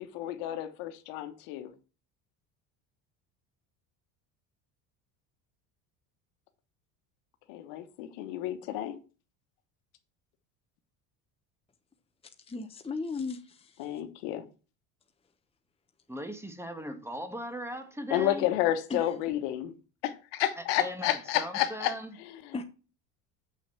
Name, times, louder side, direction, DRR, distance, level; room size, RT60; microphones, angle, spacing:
voice 1, 0.1-1.7 7.5-9.0 13.8-14.5 18.1-19.7 20.0-21.9 22.2-22.5, left 13 dB, 75° left, 1.3 m, -31 dB
voice 2, 12.5-13.9 18.9-19.1 22.5-22.6, left 4 dB, 15° left, 1.0 m, -36 dB
voice 3, 16.1-18.5 20.6-22.2, equal, 5° right, 1.7 m, -38 dB
7.0 x 5.9 x 5.9 m
supercardioid pair, 90°, 42 cm